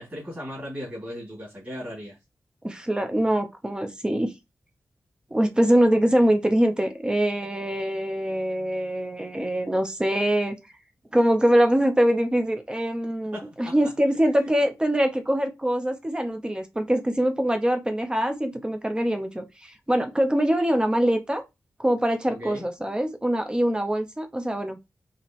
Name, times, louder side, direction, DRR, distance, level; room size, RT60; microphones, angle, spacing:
voice 1, 0.0-2.2 6.1-6.3 13.3-13.9 22.3-22.7, equal, 30° right, 2.3 m, -37 dB
voice 2, 2.6-4.3 5.3-10.6 11.1-21.4 21.8-24.8, equal, 15° right, 0.6 m, -23 dB
5.0 x 2.9 x 2.9 m
wide cardioid pair, 135°, 6 cm